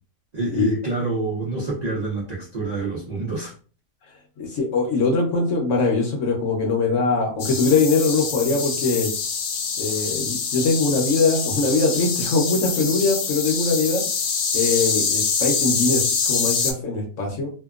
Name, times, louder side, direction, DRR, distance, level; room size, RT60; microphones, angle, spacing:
voice 1, 0.3-3.5, right 2 dB, 65° right, -6 dB, 0.4 m, -27 dB
voice 2, 4.4-9.1 9.8-14.0 14.5-17.5, left 3 dB, 60° left, 0 dB, 0.9 m, -22 dB
sound 1, 7.4-16.7, left 5 dB, 90° left, 0.5 m, -25 dB
2.8 x 2.2 x 2.3 m, 0.39 s
omnidirectional pair, 1.7 m